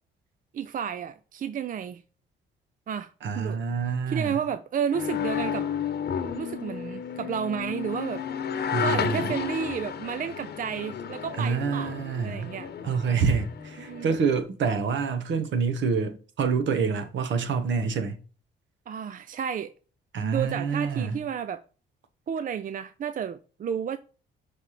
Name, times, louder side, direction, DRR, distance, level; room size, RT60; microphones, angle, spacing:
voice 1, 0.5-2.0 2.9-3.6 4.1-5.7 6.3-8.2 8.8-12.7 13.8-14.1 18.9-19.7 20.2-21.6 22.3-24.0, right 8 dB, 45° right, 0.5 m, -32 dB
voice 2, 3.2-4.4 8.7-9.3 11.4-12.5 12.8-18.2 20.1-21.2, right 5 dB, 70° right, 1.2 m, -27 dB
sound 1, 4.9-14.4, left 8 dB, 55° left, 1.0 m, -32 dB
6.3 x 3.4 x 5.6 m
cardioid pair, 90°, 20 cm